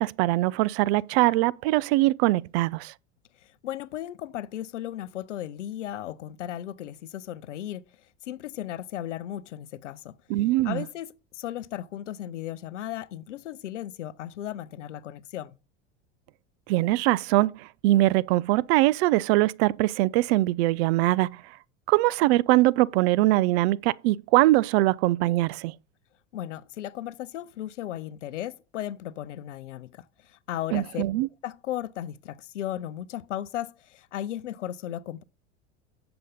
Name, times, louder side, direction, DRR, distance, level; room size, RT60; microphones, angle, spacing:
voice 1, 0.0-2.9 10.3-10.8 16.7-21.4 21.9-25.7 30.7-31.3, right 18 dB, 60° right, 0.5 m, -22 dB
voice 2, 3.4-7.8 8.2-10.2 10.6-15.6 26.3-31.0 31.4-35.2, left 12 dB, 90° left, 0.6 m, -36 dB
7.8 x 6.8 x 3.8 m
hypercardioid pair, 90°, 35 cm